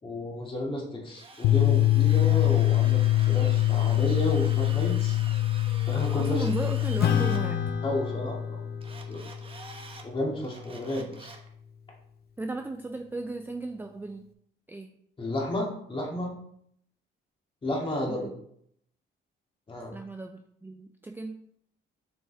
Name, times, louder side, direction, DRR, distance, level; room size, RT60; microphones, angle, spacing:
voice 1, 0.0-5.2 5.9-6.4 7.8-8.6 9.1-9.2 10.0-11.3 15.2-16.3 17.6-18.3 19.7-19.9, left 1 dB, 25° left, -3 dB, 2.3 m, -32 dB
Drill, 1.1-7.4 8.8-10.1 10.4-11.5, right 3 dB, 25° right, 1.0 m, -46 dB
sound 1, 1.4-7.7, left 15 dB, 85° left, 0.4 m, -23 dB
voice 2, 6.1-7.6 12.4-14.3 14.7-14.9 18.1-18.3 19.9-21.4, right 2 dB, 10° right, 5 dB, 0.5 m, -35 dB
Acoustic guitar / Strum, 7.0-11.8, left 6 dB, 55° left, 0.7 m, -33 dB
7.2 x 5.3 x 3.4 m, 0.69 s
cardioid pair, 120°, 20 cm